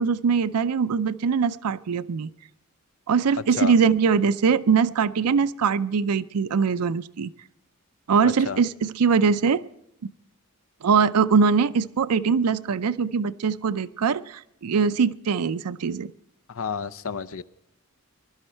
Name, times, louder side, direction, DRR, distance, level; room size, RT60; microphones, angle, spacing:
voice 1, 0.0-2.3 3.1-7.3 8.1-9.6 10.8-16.1, right 6 dB, 85° right, 15 dB, 0.5 m, -22 dB
voice 2, 8.2-8.6 16.5-17.4, left 5 dB, 65° left, 15 dB, 0.6 m, -31 dB
21.5 x 12.0 x 4.4 m, 0.82 s
head